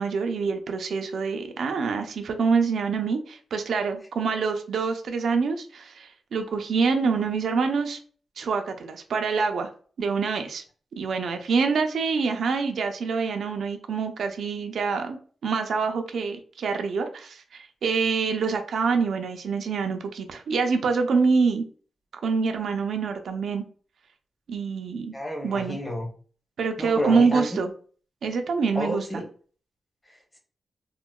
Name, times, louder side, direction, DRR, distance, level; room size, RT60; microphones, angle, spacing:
voice 1, 0.0-8.0 8.4-9.7 10.0-10.6 11.0-21.6 22.2-23.6 24.5-25.1 25.4-25.8 26.6-27.7 28.2-29.2, right 5 dB, 75° right, 5 dB, 0.4 m, -26 dB
voice 2, 25.1-26.1 26.8-27.6 28.7-29.2, equal, 20° left, -1 dB, 1.0 m, -30 dB
3.7 x 2.1 x 2.2 m, 0.42 s
wide cardioid pair, 150°, 0 cm